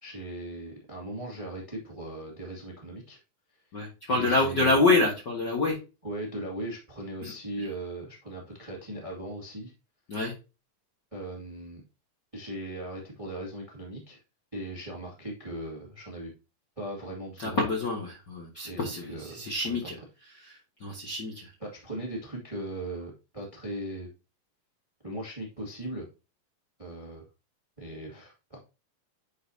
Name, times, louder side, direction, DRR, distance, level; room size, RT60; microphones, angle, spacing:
voice 1, 0.0-3.2 4.1-4.8 6.0-9.7 11.1-11.8 12.3-14.2 14.5-16.3 16.8-17.6 18.6-19.9 21.6-24.1 25.0-26.1 26.8-27.2 27.8-28.6, right 1 dB, 15° right, -2 dB, 1.2 m, -38 dB
voice 2, 3.7-5.8 7.2-7.3 7.6-7.7 10.1-10.3 17.4-20.0 20.4-21.5, left 2 dB, 50° left, -2 dB, 1.4 m, -27 dB
10.0 x 5.1 x 2.8 m, 0.30 s
omnidirectional pair, 4.1 m